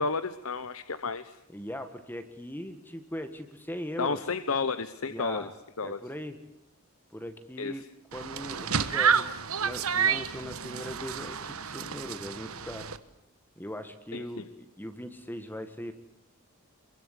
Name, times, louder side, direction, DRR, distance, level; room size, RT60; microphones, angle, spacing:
voice 1, 0.0-1.3 4.0-5.5 5.8-6.0 7.6-7.7 14.1-14.3, left 4 dB, 70° left, 12 dB, 1.0 m, -31 dB
voice 2, 1.5-4.2 5.1-5.5 5.8-6.4 7.1-7.8 8.1-12.9 13.6-15.9, equal, 10° left, 8 dB, 1.8 m, -40 dB
sound 1, 8.1-13.0, right 7 dB, 75° right, 1.4 m, -29 dB
27.5 x 23.5 x 8.4 m, 0.75 s
head